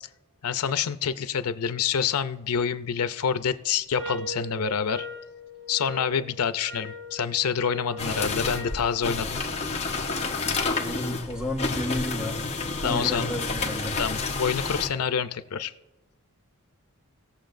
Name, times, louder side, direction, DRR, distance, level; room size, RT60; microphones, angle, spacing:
voice 1, 0.4-5.1 5.7-9.4 12.8-13.3 14.0-15.7, left 7 dB, 90° left, 12 dB, 0.6 m, -27 dB
sound 1, 3.9-8.9, left 1 dB, 50° right, 1.2 m, -39 dB
sound 2, 8.0-14.9, left 3 dB, 30° left, 1.1 m, -30 dB
voice 2, 10.8-12.5 12.8-14.0, left 1 dB, 5° right, 1 dB, 1.4 m, -31 dB
19.0 x 7.2 x 2.6 m, 1.1 s
head